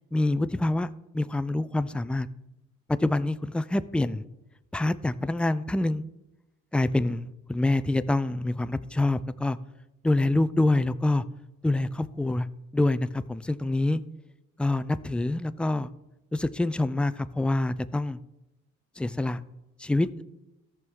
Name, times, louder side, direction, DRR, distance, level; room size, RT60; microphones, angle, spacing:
voice 1, 0.1-2.3 2.9-4.2 4.7-6.0 6.7-9.6 10.0-11.2 11.6-12.5 12.7-14.0 14.6-15.9 16.3-18.2 19.0-19.4 19.8-20.2, left 2 dB, 5° left, 13 dB, 0.4 m, -26 dB
13.5 x 6.1 x 3.7 m, 0.93 s
cardioid pair, 90°, 30 cm